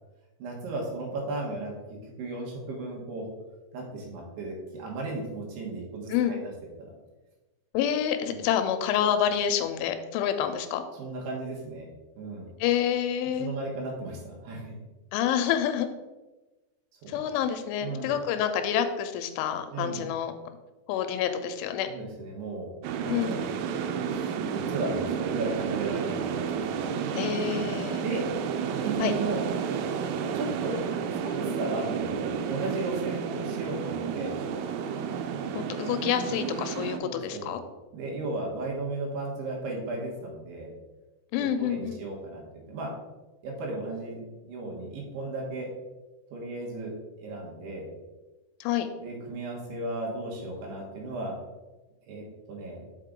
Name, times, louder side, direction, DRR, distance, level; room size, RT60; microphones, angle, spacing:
voice 1, 0.4-1.7 2.0-3.3 3.7-6.4 8.3-8.4 11.0-11.9 12.2-12.5 13.4-14.8 17.0-17.2 17.8-18.1 19.7-20.0 21.9-22.7 23.0-23.4 24.1-26.6 27.9-28.3 28.8-29.4 30.2-30.8 31.1-34.3 37.0-37.6 37.9-40.7 41.4-42.4 42.7-42.9 43.4-45.7 46.3-46.9 47.2-47.9 49.0-51.4 52.1-52.8, right 2 dB, 70° right, -1 dB, 3.0 m, -35 dB
voice 2, 7.7-10.8 12.6-13.5 15.1-15.9 17.1-20.3 20.9-21.9 23.1-23.4 27.1-28.0 29.0-29.1 35.5-37.6 41.3-42.0 48.6-48.9, left 9 dB, 90° left, 9 dB, 3.0 m, -28 dB
sound 1, 22.8-37.0, right 7 dB, 90° right, 3.1 m, -31 dB
6.5 x 5.0 x 3.7 m, 1.1 s
omnidirectional pair, 5.4 m